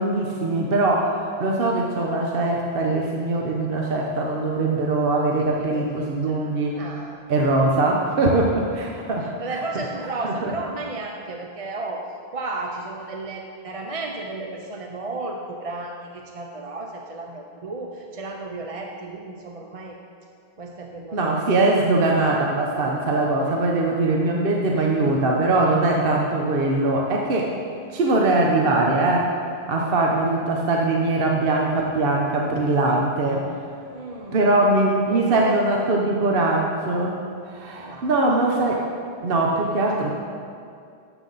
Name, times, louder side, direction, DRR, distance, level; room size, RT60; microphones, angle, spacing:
voice 1, 0.0-6.8 7.3-9.3 10.2-10.5 21.1-27.5 27.9-29.3 29.7-33.4 34.3-37.1 37.5-38.8 39.2-40.1, right 2 dB, 60° right, -1 dB, 1.0 m, -21 dB
voice 2, 5.4-7.2 9.2-20.0 20.6-21.5 23.5-23.7 29.7-30.0 33.9-34.7 35.1-35.6 35.9-36.3 37.7-38.4, right 2 dB, 40° right, 2 dB, 0.6 m, -34 dB
12.0 x 8.1 x 4.0 m, 2.3 s
omnidirectional pair, 1.1 m